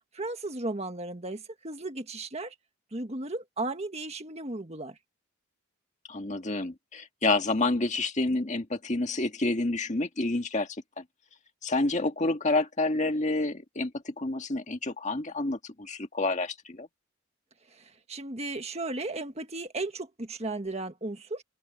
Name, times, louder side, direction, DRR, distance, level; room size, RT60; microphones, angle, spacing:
voice 1, 0.1-2.5 2.9-5.0 17.7-21.4, right 2 dB, 30° right, 1.7 m, -35 dB
voice 2, 6.1-10.7 11.0-11.1 11.6-16.9, left 2 dB, 35° left, 1.8 m, -29 dB
open air
head